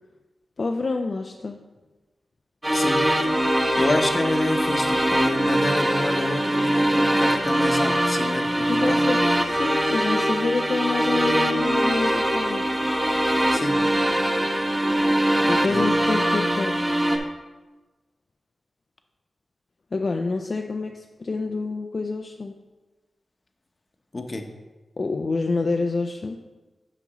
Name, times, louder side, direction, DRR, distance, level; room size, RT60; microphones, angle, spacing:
voice 1, 0.6-1.6 8.7-12.6 15.4-16.7 19.9-22.5 25.0-26.4, left 3 dB, 50° left, 3 dB, 0.4 m, -27 dB
sound 1, 2.6-17.2, right 1 dB, 15° right, 1.0 m, -22 dB
voice 2, 2.7-9.0 13.5-13.9 15.6-15.9 24.1-24.5, left 1 dB, 35° left, 5 dB, 0.9 m, -28 dB
9.7 x 5.8 x 3.0 m, 1.2 s
cardioid pair, 70°, 0 cm